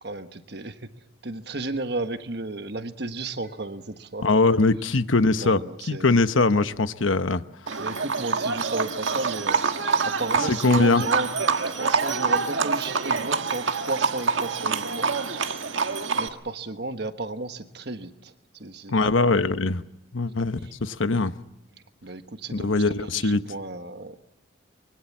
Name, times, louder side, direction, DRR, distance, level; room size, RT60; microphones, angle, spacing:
voice 1, 0.0-0.9 1.2-4.3 5.3-6.2 7.8-9.7 10.0-11.3 11.7-15.1 15.7-19.5 20.6-20.7 22.0-24.2, right 2 dB, 55° right, 1.4 m, -34 dB
voice 2, 4.2-5.6 5.9-7.4 10.6-11.0 18.9-19.8 20.1-21.3 22.5-23.4, left 3 dB, 80° left, 1.0 m, -21 dB
Livestock farm animals working animals, 7.7-16.3, right 5 dB, 75° right, 1.5 m, -26 dB
25.0 x 23.0 x 7.3 m
head